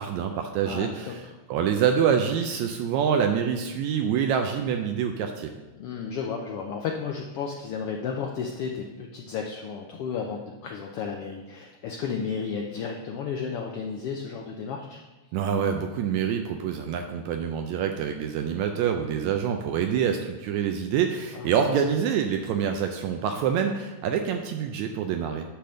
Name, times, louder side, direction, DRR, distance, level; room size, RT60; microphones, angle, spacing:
voice 1, 0.0-5.5 15.3-25.5, right 7 dB, 80° right, 5 dB, 1.8 m, -26 dB
voice 2, 0.6-1.3 5.8-15.0 21.3-21.8, left 6 dB, 90° left, 1 dB, 1.3 m, -33 dB
10.0 x 3.5 x 6.4 m, 1.2 s
omnidirectional pair, 3.3 m